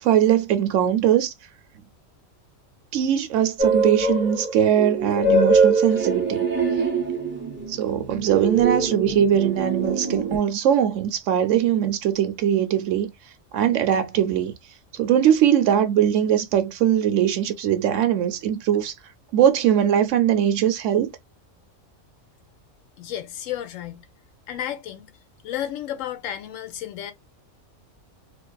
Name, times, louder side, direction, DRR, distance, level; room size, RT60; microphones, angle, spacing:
voice 1, 0.0-1.3 2.9-6.5 7.7-13.1 13.5-14.5 14.9-18.9 19.3-21.1, right 10 dB, 70° right, 0.9 m, -21 dB
sound 1, 3.6-10.4, right 3 dB, 15° right, 0.4 m, -23 dB
voice 2, 23.0-24.0 24.5-25.1 25.4-27.1, left 11 dB, 80° left, 1.0 m, -32 dB
2.5 x 2.3 x 2.2 m
omnidirectional pair, 1.4 m